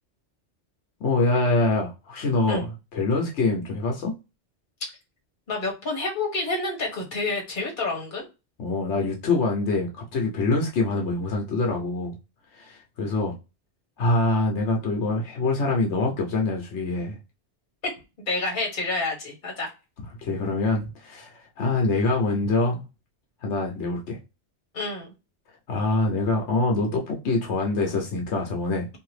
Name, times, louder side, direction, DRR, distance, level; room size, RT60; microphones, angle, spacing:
voice 1, 1.0-4.1 8.6-12.2 12.5-13.3 14.0-17.2 20.2-22.8 23.4-24.2 25.7-28.9, left 2 dB, 85° left, 1.1 m, -25 dB
voice 2, 5.5-8.2 18.3-19.7 24.7-25.1, left 2 dB, 45° left, 1.3 m, -28 dB
2.8 x 2.6 x 3.1 m
omnidirectional pair, 1.2 m